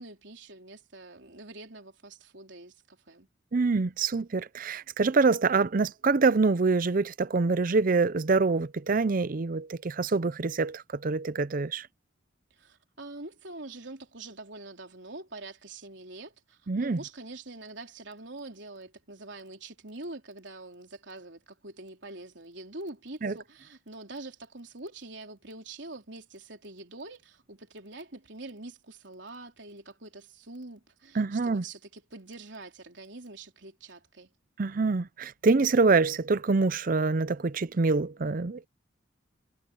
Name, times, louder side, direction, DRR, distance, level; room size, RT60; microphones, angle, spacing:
voice 1, 0.0-3.3 12.5-34.3, right 2 dB, 65° right, 3.8 m, -45 dB
voice 2, 3.5-11.9 16.7-17.0 23.2-23.3 31.2-31.6 34.6-38.7, right 4 dB, 45° right, 0.5 m, -25 dB
head